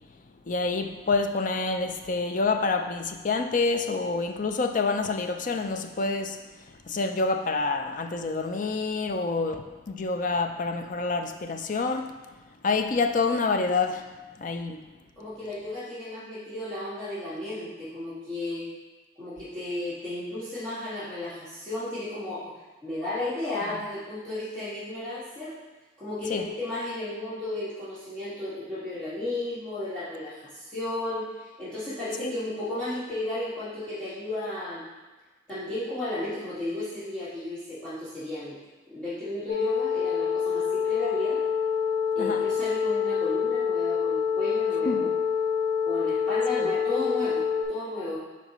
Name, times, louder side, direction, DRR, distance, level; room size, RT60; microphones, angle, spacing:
voice 1, 0.5-6.4 6.9-12.1 12.6-14.1 14.4-14.8 26.3-26.5 32.2-32.3 42.2-42.4 44.8-45.1 46.6-46.7, left 3 dB, 45° left, 6 dB, 0.5 m, -27 dB
voice 2, 15.2-18.7 19.2-22.5 22.8-25.5 26.0-34.8 35.5-38.6 38.9-41.4 42.2-45.1 45.9-48.2, left 1 dB, 5° left, -15 dB, 1.9 m, -34 dB
sound 1, 39.5-47.6, left 6 dB, 65° left, 2.3 m, -26 dB
8.9 x 4.6 x 3.1 m, 1.2 s
head